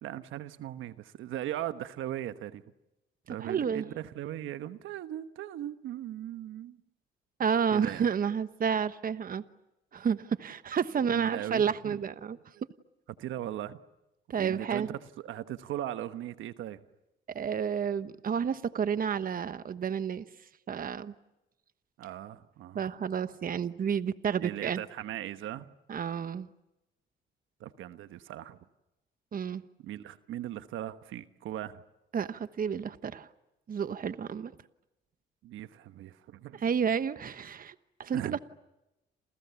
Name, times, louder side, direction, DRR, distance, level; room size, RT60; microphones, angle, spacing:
voice 1, 0.0-2.6 3.3-6.8 7.7-8.0 11.1-12.0 13.2-13.8 14.4-16.8 22.0-22.8 24.4-25.7 27.6-28.6 29.8-31.8 35.4-36.6 38.1-38.4, right 12 dB, 85° right, 1.2 m, -38 dB
voice 2, 3.4-3.9 7.4-9.4 9.9-12.4 14.3-14.9 17.3-20.2 20.7-21.1 22.7-24.8 25.9-26.5 29.3-29.6 32.1-33.3 33.7-34.5 36.6-37.7 38.0-38.4, right 7 dB, 45° right, 1.1 m, -30 dB
29.5 x 28.0 x 7.1 m
cardioid pair, 90°, 20 cm